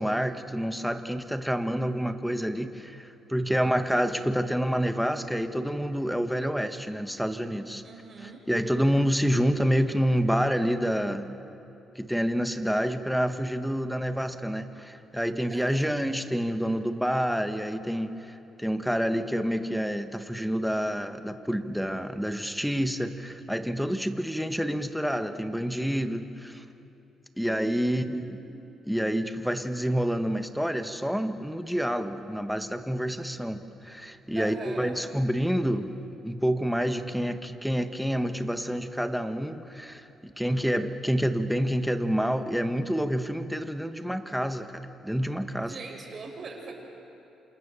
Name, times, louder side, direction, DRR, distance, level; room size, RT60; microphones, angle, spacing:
voice 1, 0.0-7.8 8.2-11.3 11.9-26.6 27.4-28.4 28.9-35.9 36.2-45.7, equal, ahead, 8 dB, 1.5 m, -28 dB
voice 2, 7.8-8.4 15.5-15.9 27.8-28.6 34.3-35.0 45.5-46.7, right 4 dB, 45° right, 1 dB, 6.2 m, -42 dB
28.0 x 27.0 x 7.0 m, 2.8 s
cardioid pair, 90°, 0 cm